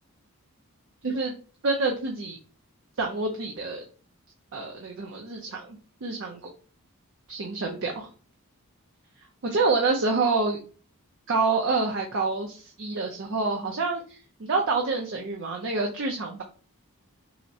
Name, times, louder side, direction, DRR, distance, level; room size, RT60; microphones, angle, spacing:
voice 1, 1.0-1.3 1.6-2.4 3.0-3.8 4.5-5.8 6.0-6.4 7.3-8.1 9.4-10.6 11.3-16.4, right 3 dB, 55° right, 1 dB, 0.5 m, -27 dB
5.5 x 2.1 x 2.7 m, 0.38 s
head